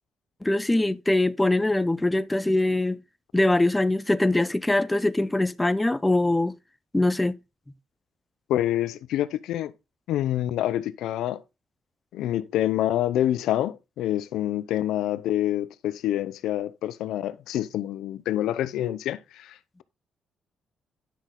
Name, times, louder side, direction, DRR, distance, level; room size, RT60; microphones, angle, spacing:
voice 1, 0.4-3.0 3.3-6.5 6.9-7.4, left 2 dB, 10° left, 0.6 m, -23 dB
voice 2, 8.5-9.7 10.1-11.4 12.1-19.8, left 12 dB, 85° left, 0.7 m, -27 dB
10.0 x 6.4 x 3.8 m
cardioid pair, 90°, 0 cm